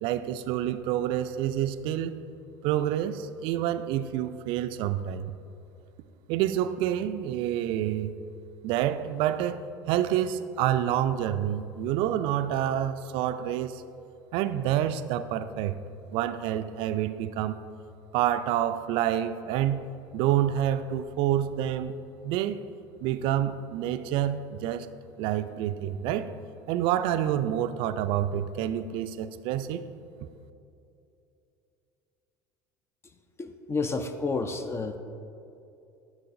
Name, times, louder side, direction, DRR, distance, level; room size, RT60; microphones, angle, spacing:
voice 1, 0.0-2.2 2.6-5.3 6.3-8.1 8.6-13.8 14.3-15.8 16.1-17.6 18.1-19.8 20.1-21.9 22.2-22.6 23.0-24.9 25.2-26.3 26.7-29.8, right 11 dB, 60° right, 12 dB, 0.3 m, -28 dB
voice 2, 33.4-35.0, left 4 dB, 25° left, 8 dB, 0.4 m, -30 dB
10.0 x 6.3 x 2.6 m, 2.7 s
hypercardioid pair, 75°, 10 cm